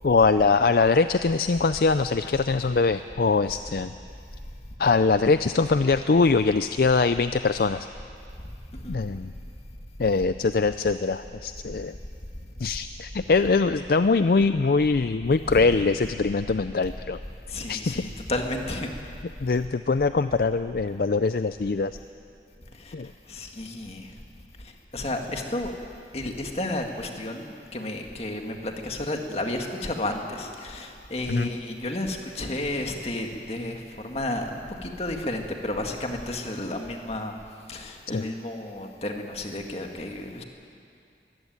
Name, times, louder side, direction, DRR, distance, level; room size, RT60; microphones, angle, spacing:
voice 1, 0.0-3.9 4.8-7.9 8.9-9.3 10.0-11.9 12.6-17.2 17.7-18.0 19.4-22.0 22.9-23.1 31.3-31.5 38.1-38.2, left 4 dB, 55° left, 11 dB, 0.4 m, -22 dB
voice 2, 8.7-9.0 15.5-15.8 17.5-18.9 22.7-22.9 23.3-24.1 24.6-25.7 26.1-37.4 37.7-40.4, left 1 dB, 35° left, 3 dB, 2.0 m, -32 dB
22.5 x 15.5 x 9.5 m, 2.5 s
head